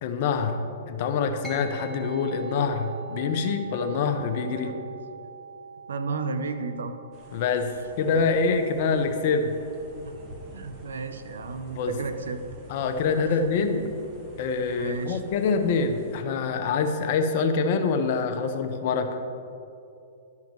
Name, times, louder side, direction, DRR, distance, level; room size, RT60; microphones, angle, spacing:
voice 1, 0.0-4.7 7.3-7.7 8.0-9.5 11.8-12.0 12.7-13.9 14.4-19.1, left 5 dB, 50° left, 6 dB, 0.7 m, -25 dB
sound 1, 1.4-11.2, right 4 dB, 5° right, 1.1 m, -44 dB
voice 2, 5.9-6.9 10.5-12.4 14.8-15.2, right 4 dB, 75° right, 9 dB, 0.5 m, -33 dB
sound 2, 7.1-16.2, right 1 dB, 30° right, 1.5 m, -47 dB
11.5 x 5.9 x 3.0 m, 2.7 s
hypercardioid pair, 120°, 0 cm